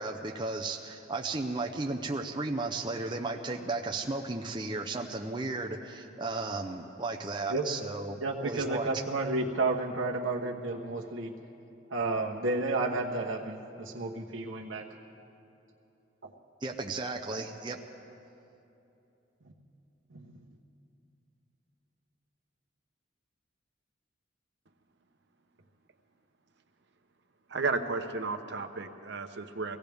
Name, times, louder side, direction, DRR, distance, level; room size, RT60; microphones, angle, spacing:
voice 1, 0.0-9.0 16.6-17.8, right 3 dB, 25° right, 2 dB, 0.6 m, -34 dB
voice 2, 8.2-11.3 11.9-14.8 16.2-16.3 20.1-20.4, right 2 dB, 90° right, -2 dB, 1.1 m, -31 dB
voice 3, 27.5-29.8, right 4 dB, 60° right, 7 dB, 0.9 m, -33 dB
23.0 x 17.0 x 3.5 m, 2.9 s
head